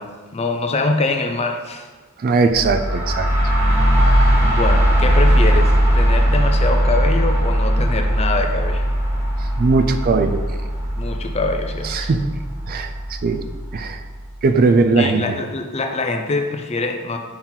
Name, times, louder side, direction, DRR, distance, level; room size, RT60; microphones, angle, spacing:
voice 1, 0.0-1.9 4.4-8.9 10.9-12.1 15.0-17.2, left 3 dB, 30° left, 5 dB, 0.5 m, -24 dB
voice 2, 2.2-3.3 4.0-4.1 9.6-10.4 11.8-12.3 12.7-13.4 13.7-14.0 14.4-15.2, right 3 dB, 40° right, 8 dB, 0.3 m, -19 dB
sound 1, 2.5-14.2, equal, 10° right, 1.4 m, -18 dB
5.6 x 4.4 x 3.8 m, 1.4 s
head